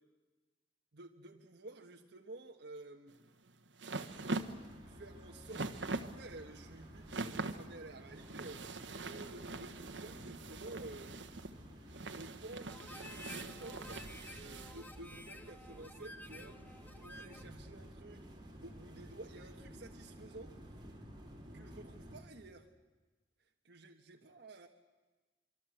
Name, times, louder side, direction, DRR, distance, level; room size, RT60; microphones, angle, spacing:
voice 1, 0.9-3.2 4.9-11.2 12.1-20.8 21.5-22.7 23.6-24.7, right 2 dB, 65° right, 1 dB, 1.5 m, -52 dB
sound 1, 3.1-14.8, right 2 dB, 85° right, 1.4 m, -43 dB
In-Car Highway, 4.1-22.2, equal, 25° right, 4.7 m, -53 dB
Harmonica, 12.7-17.6, left 2 dB, 10° left, 1.2 m, -53 dB
25.5 x 24.5 x 7.9 m, 1.2 s
head